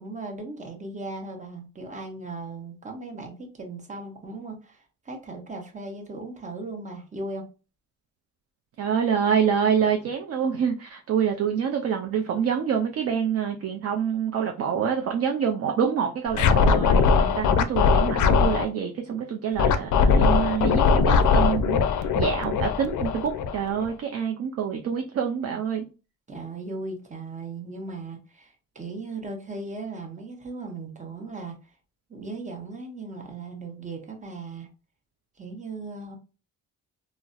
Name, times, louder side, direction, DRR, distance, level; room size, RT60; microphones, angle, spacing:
voice 1, 0.0-7.5 26.3-31.6 32.1-34.7 35.4-36.2, right 3 dB, 20° right, 0.8 m, -37 dB
voice 2, 8.8-25.9, right 7 dB, 45° right, 0.4 m, -26 dB
Scratching (performance technique), 16.3-18.7 19.6-23.9, left 5 dB, 55° left, 0.4 m, -20 dB
3.9 x 2.0 x 2.3 m
cardioid pair, 115°, 35 cm